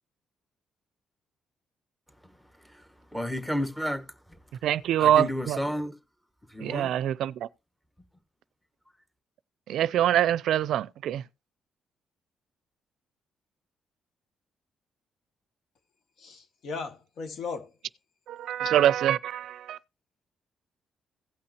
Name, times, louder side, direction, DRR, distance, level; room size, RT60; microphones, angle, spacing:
voice 1, 3.1-4.0 5.0-5.9 6.5-6.9, equal, 5° left, 1.3 m, -31 dB
voice 2, 4.6-5.6 6.6-7.5 9.7-11.2 18.3-19.8, right 11 dB, 75° right, 0.4 m, -25 dB
voice 3, 16.2-17.7, left 4 dB, 70° left, 1.8 m, -37 dB
17.0 x 5.7 x 2.8 m
cardioid pair, 90°, 0 cm